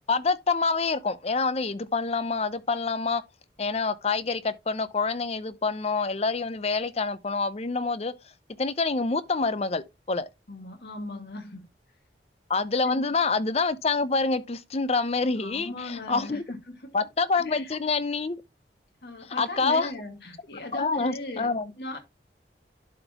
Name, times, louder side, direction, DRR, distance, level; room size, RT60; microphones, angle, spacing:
voice 1, 0.1-3.2 3.6-8.1 8.6-10.3 12.5-16.4 16.9-18.4 19.3-19.9 20.7-21.7, left 4 dB, 35° left, 0.6 m, -27 dB
voice 2, 10.5-11.7 12.8-13.2 15.4-16.6 16.8-17.0 17.4-17.8 19.0-22.0, left 1 dB, 65° left, 1.9 m, -38 dB
11.5 x 4.0 x 2.9 m
head